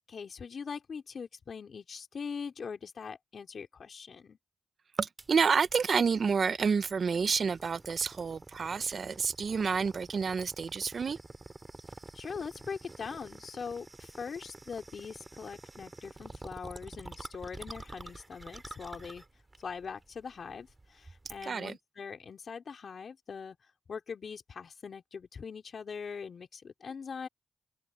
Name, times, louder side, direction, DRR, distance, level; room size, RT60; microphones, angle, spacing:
voice 1, 0.1-4.4 12.1-19.2 19.6-23.6 23.9-27.3, left 6 dB, 70° left, 3.6 m, -42 dB
voice 2, 5.0-11.2 21.4-21.8, right 5 dB, 65° right, 1.0 m, -29 dB
sound 1, 5.2-21.5, right 2 dB, 35° right, 3.3 m, -49 dB
open air
supercardioid pair, 45°, 0 cm